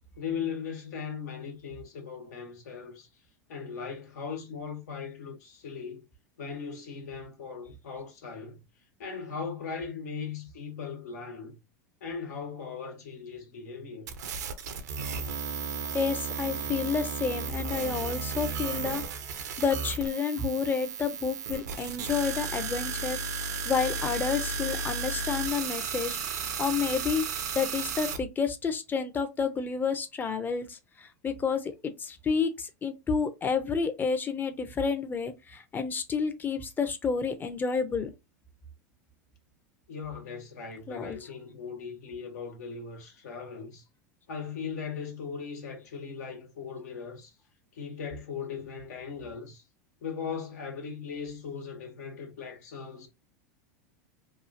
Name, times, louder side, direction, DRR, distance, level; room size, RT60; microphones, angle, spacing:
voice 1, 0.2-3.2 3.5-6.0 6.4-8.6 9.0-11.6 12.0-14.1 39.9-43.9 44.3-47.4 47.7-49.6 50.0-53.1, left 6 dB, 80° left, 1.2 m, -38 dB
sound 1, 14.1-28.2, right 5 dB, 80° right, 0.6 m, -34 dB
voice 2, 15.9-19.0 19.3-26.2 26.6-27.2 27.5-38.1 40.9-41.2, left 5 dB, 20° left, 0.6 m, -30 dB
3.0 x 2.4 x 2.5 m
hypercardioid pair, 105°, 9 cm